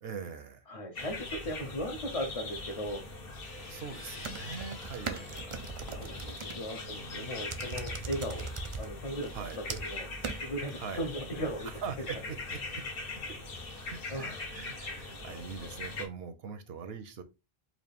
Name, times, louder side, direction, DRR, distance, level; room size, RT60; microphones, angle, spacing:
voice 1, 0.0-0.7 3.6-5.7 6.8-7.6 9.3-9.6 10.7-11.1 11.7-12.8 13.9-17.2, right 6 dB, 75° right, 0.8 m, -42 dB
voice 2, 0.7-3.0 5.1-5.3 5.8-8.5 8.8-10.1 10.4-11.7 14.1-14.4, equal, 40° left, 0.6 m, -37 dB
sound 1, 0.9-16.1, left 2 dB, 65° left, 1.1 m, -42 dB
sound 2, 3.2-5.5 6.0-8.8, left 2 dB, 80° left, 1.4 m, -51 dB
sound 3, 4.2-6.6 7.5-8.9 9.2-9.9 10.2-10.4, right 5 dB, 45° right, 0.4 m, -39 dB
4.1 x 2.4 x 3.4 m
omnidirectional pair, 1.0 m